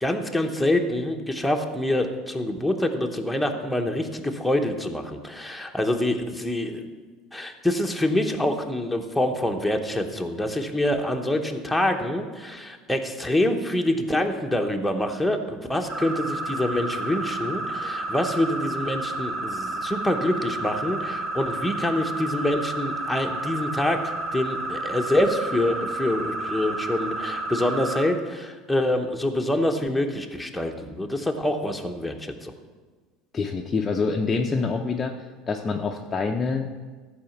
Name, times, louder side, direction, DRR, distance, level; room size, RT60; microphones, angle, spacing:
voice 1, 0.0-6.9 7.3-24.0 24.3-32.5, left 1 dB, ahead, 2 dB, 0.9 m, -26 dB
sound 1, 15.9-28.0, right 2 dB, 25° right, 2.9 m, -31 dB
voice 2, 33.3-35.1 35.5-36.9, left 4 dB, 20° left, 2 dB, 0.6 m, -26 dB
14.0 x 4.9 x 7.2 m, 1.4 s
cardioid pair, 150°, 0 cm